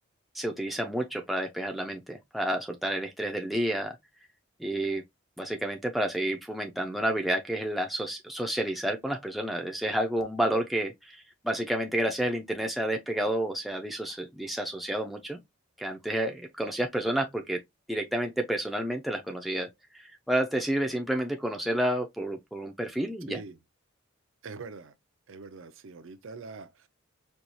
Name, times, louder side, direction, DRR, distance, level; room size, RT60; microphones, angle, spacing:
voice 1, 0.3-4.0 4.6-5.0 5.4-15.4 15.8-17.6 17.9-19.7 19.9-23.4, right 1 dB, ahead, 0.4 m, -30 dB
voice 2, 23.3-23.6 24.4-24.9 25.3-26.9, right 4 dB, 70° right, 0.5 m, -43 dB
4.4 x 2.3 x 2.6 m
head